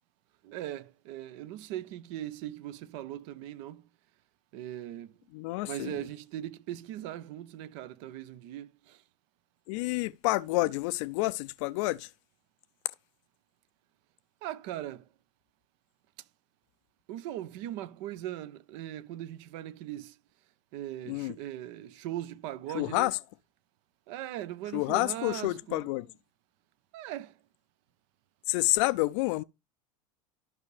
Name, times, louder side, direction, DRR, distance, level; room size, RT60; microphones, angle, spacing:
voice 1, 0.5-3.8 4.5-5.1 5.6-8.7 14.4-15.0 17.1-20.1 20.7-23.1 24.1-25.8 26.9-27.3, right 12 dB, 60° right, 0.8 m, -39 dB
voice 2, 5.3-6.1 9.7-12.1 21.1-21.4 22.7-23.2 24.7-26.1 28.5-29.4, left 20 dB, 60° left, 0.4 m, -29 dB
12.0 x 5.5 x 3.2 m
hypercardioid pair, 90°, 17 cm